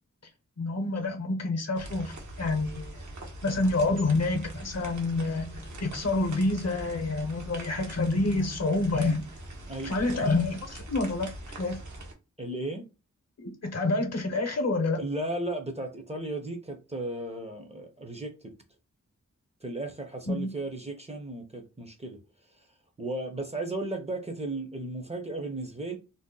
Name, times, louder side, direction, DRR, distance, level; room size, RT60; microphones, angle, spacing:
voice 1, 0.6-3.0 3.4-9.2 9.8-11.3 11.6-11.8 13.4-15.0 20.2-20.5, left 2 dB, 55° left, 0.8 m, -28 dB
sound 1, 1.7-12.1, right 1 dB, 65° right, 0.9 m, -42 dB
voice 2, 9.7-10.3 12.4-12.9 15.0-18.5 19.6-22.2 22.6-22.7 23.0-26.0, right 2 dB, 20° right, 0.6 m, -35 dB
2.6 x 2.0 x 3.7 m
wide cardioid pair, 90°, 32 cm